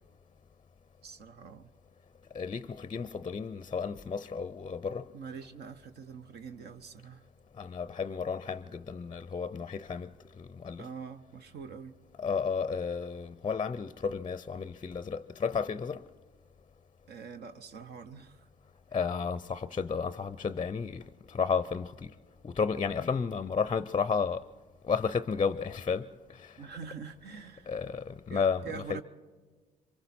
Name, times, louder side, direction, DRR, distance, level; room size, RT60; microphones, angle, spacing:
voice 1, 1.0-1.7 5.1-7.2 10.8-11.9 17.1-18.4 26.6-27.8 28.3-29.0, right 6 dB, 65° right, 0.9 m, -44 dB
voice 2, 2.3-5.1 7.6-10.9 12.2-16.1 18.9-22.2 22.4-24.5 24.8-26.6 27.7-28.6 28.9-29.0, left 5 dB, 25° left, 0.5 m, -32 dB
27.0 x 24.0 x 4.2 m
hypercardioid pair, 55°, 18 cm